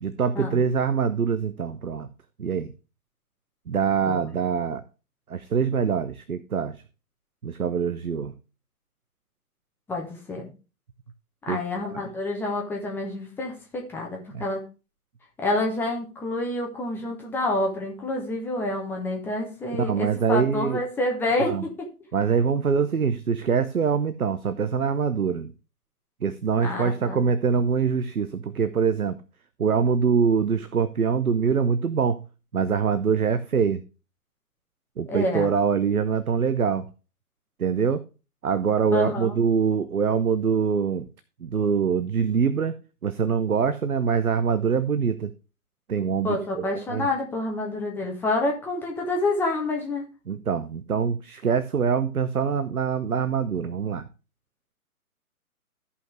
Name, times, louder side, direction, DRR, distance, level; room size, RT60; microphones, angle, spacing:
voice 1, 0.0-2.1 2.4-2.7 3.7-4.8 5.3-6.8 7.4-8.3 11.5-11.9 14.3-14.4 19.7-20.8 21.4-21.6 22.1-25.5 26.2-29.2 29.6-32.2 32.5-33.8 35.0-36.9 37.6-38.0 38.4-41.1 41.4-42.7 43.0-45.3 45.9-47.1 50.3-54.1, right 6 dB, 70° right, 13 dB, 0.8 m, -24 dB
voice 2, 9.9-10.5 11.5-14.6 15.4-21.7 26.6-27.2 35.1-35.5 38.9-39.3 46.2-50.0, left 2 dB, 5° left, 0 dB, 1.1 m, -28 dB
14.0 x 5.6 x 3.2 m, 0.31 s
figure-of-eight pair, 130°, 45 cm